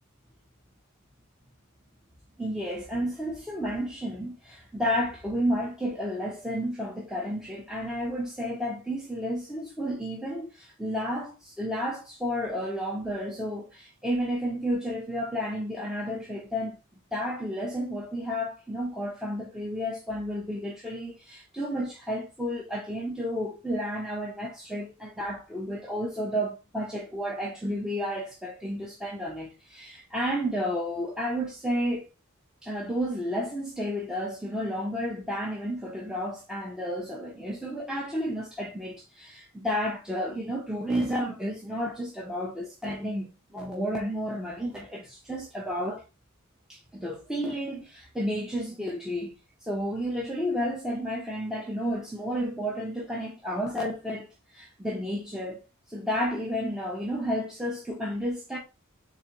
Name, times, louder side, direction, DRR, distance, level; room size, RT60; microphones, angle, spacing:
voice 1, 2.4-16.8 17.1-32.1 32.6-46.0 46.7-49.3 49.6-54.3 54.5-55.6 55.9-58.6, equal, 5° right, 0.6 m, -31 dB
4.0 x 3.3 x 2.8 m
head